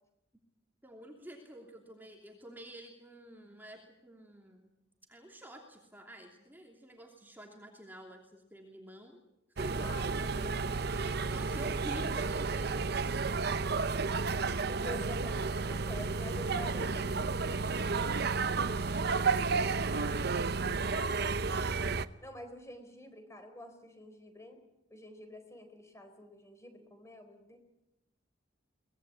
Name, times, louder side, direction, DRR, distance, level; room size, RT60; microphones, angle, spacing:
voice 1, 0.8-4.7 5.1-9.2 9.5-13.2, equal, 10° right, 1 dB, 2.8 m, -50 dB
sound 1, 9.6-22.1, right 4 dB, 60° right, 0.8 m, -32 dB
voice 2, 9.8-11.3 12.0-12.2 14.7-18.0 22.2-24.6 24.9-27.6, left 1 dB, 15° left, 7 dB, 4.2 m, -48 dB
24.0 x 19.5 x 8.5 m, 0.91 s
head